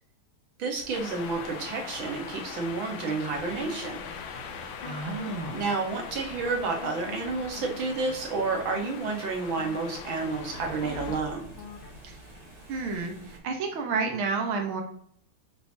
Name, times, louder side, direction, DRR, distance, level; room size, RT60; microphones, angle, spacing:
voice 1, 0.6-4.0 5.5-11.5, right 4 dB, 70° right, 2 dB, 2.1 m, -30 dB
sound 1, 0.7-13.4, right 1 dB, 15° right, 3.0 m, -49 dB
sound 2, 0.9-11.2, left 7 dB, 80° left, 1.6 m, -41 dB
sound 3, 3.1-12.0, left 7 dB, 60° left, 0.5 m, -45 dB
voice 2, 4.8-5.6 12.1-12.2 12.7-14.8, right 4 dB, 85° right, 2 dB, 1.9 m, -30 dB
9.0 x 5.1 x 2.8 m, 0.65 s
omnidirectional pair, 2.2 m